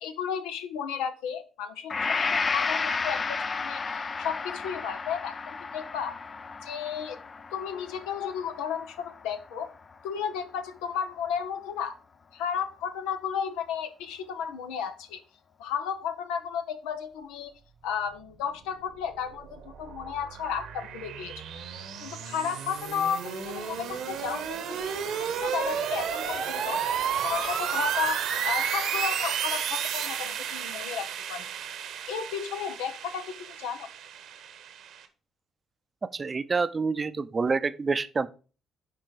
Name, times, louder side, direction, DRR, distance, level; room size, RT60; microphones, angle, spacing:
voice 1, 0.0-1.9 2.3-6.2 6.6-7.2 7.5-9.7 10.0-12.0 12.3-15.2 15.6-17.5 17.8-21.3 22.0-25.1 25.4-26.8 27.2-31.5 32.1-33.9, left 7 dB, 75° left, 0.8 m, -33 dB
Gong, 1.9-9.9, left 4 dB, 40° left, 0.5 m, -32 dB
sound 1, 19.0-35.0, right 8 dB, 70° right, 1.1 m, -32 dB
voice 2, 36.1-38.3, right 4 dB, 35° right, 0.6 m, -27 dB
10.5 x 3.9 x 4.7 m
hypercardioid pair, 50°, 0 cm